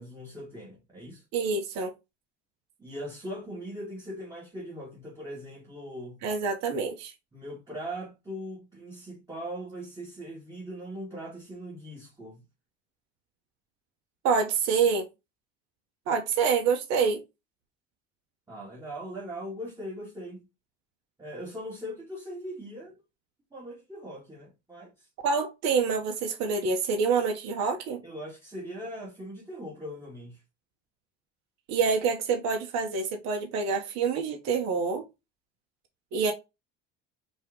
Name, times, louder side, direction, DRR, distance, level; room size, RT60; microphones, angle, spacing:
voice 1, 0.0-1.2 2.8-6.2 7.3-12.4 18.5-20.5 21.2-23.0 23.5-25.1 28.0-30.4, equal, 15° right, 1.9 m, -40 dB
voice 2, 1.3-1.9 6.2-7.1 14.2-15.1 16.1-17.2 25.2-28.0 31.7-35.0 36.1-36.3, right 5 dB, 65° right, 1.2 m, -26 dB
4.4 x 3.0 x 3.6 m
supercardioid pair, 105°, 30 cm